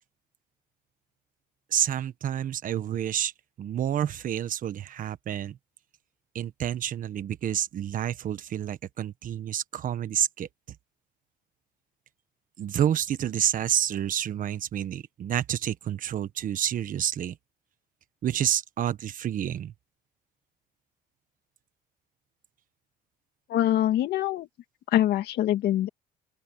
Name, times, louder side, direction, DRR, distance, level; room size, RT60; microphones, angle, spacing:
voice 1, 1.7-3.3 3.6-5.6 6.3-10.5 12.6-17.4 18.2-19.7, right 10 dB, 55° right, 1.3 m, -29 dB
voice 2, 23.5-24.5 24.9-25.9, left 12 dB, 70° left, 2.1 m, -24 dB
open air
cardioid pair, 110°, 17 cm